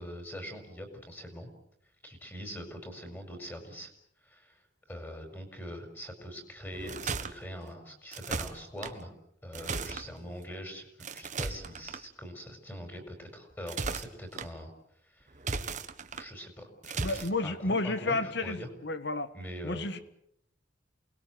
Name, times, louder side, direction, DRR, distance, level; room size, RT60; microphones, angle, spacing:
voice 1, 0.0-1.5 2.0-3.9 4.2-4.6 4.9-9.1 9.4-14.7 15.1-15.3 16.1-18.7 19.3-19.9, equal, 10° left, 5 dB, 5.1 m, -43 dB
sound 1, 6.7-7.3 8.1-8.9 9.5-10.1 11.0-12.0 13.5-14.5 15.3-16.2 16.8-17.3, right 4 dB, 40° right, 1.5 m, -36 dB
voice 2, 17.0-19.3 19.6-20.0, left 2 dB, 60° left, 12 dB, 1.7 m, -31 dB
28.5 x 20.5 x 7.8 m, 0.75 s
head